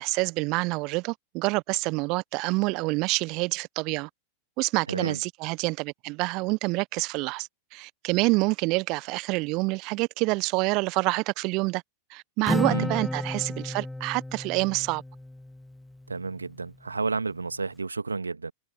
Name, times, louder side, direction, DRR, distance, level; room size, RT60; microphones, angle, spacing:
voice 1, 0.0-4.1 4.6-11.8 12.1-15.0, right 25 dB, 40° right, 1.0 m, -27 dB
voice 2, 4.9-5.2 12.7-12.9 16.1-18.5, right 4 dB, 80° right, 1.9 m, -31 dB
Acoustic guitar, 12.5-16.1, left 1 dB, 5° left, 1.7 m, -32 dB
figure-of-eight pair, 90°, 0 cm